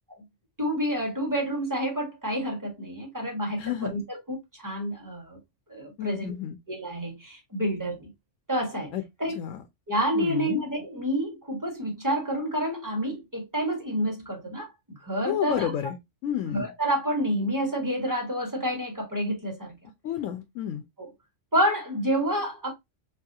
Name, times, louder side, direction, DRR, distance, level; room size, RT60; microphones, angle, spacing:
voice 1, 0.6-5.4 5.7-6.3 6.7-8.1 8.5-8.9 9.2-9.4 9.9-14.7 15.0-15.7 16.5-19.7 21.0-21.1 21.5-22.7, equal, 15° right, 1.4 m, -28 dB
voice 2, 3.6-3.9 6.0-6.6 8.9-9.0 9.4-9.6 10.1-10.6 15.2-16.7 20.0-20.8, left 10 dB, 90° left, 1.0 m, -31 dB
5.1 x 2.3 x 2.7 m
omnidirectional pair, 1.3 m